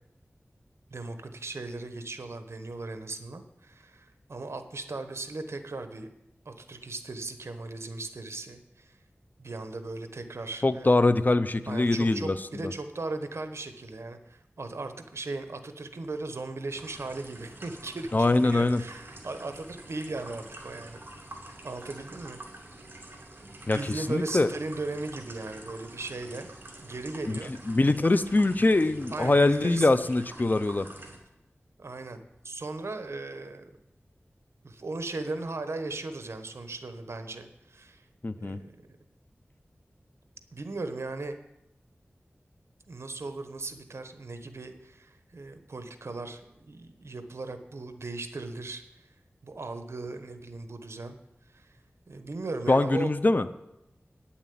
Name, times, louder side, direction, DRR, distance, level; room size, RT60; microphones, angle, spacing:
voice 1, 0.9-6.1 6.4-9.0 9.4-10.9 11.7-21.0 21.6-22.4 23.4-26.5 26.8-27.5 29.1-29.9 31.8-33.7 34.6-38.0 38.4-38.6 40.5-41.4 42.9-48.8 49.4-51.2 51.5-51.8 52.1-53.1, right 3 dB, 80° right, 8 dB, 1.1 m, -37 dB
voice 2, 10.6-12.7 18.1-18.8 23.7-24.5 27.3-27.4 27.7-30.9 38.2-38.6 52.7-53.5, left 2 dB, 40° left, 12 dB, 0.6 m, -23 dB
sound 1, 16.7-31.2, right 1 dB, 50° right, 2.4 m, -47 dB
9.5 x 7.2 x 8.5 m, 0.87 s
wide cardioid pair, 55°, 5 cm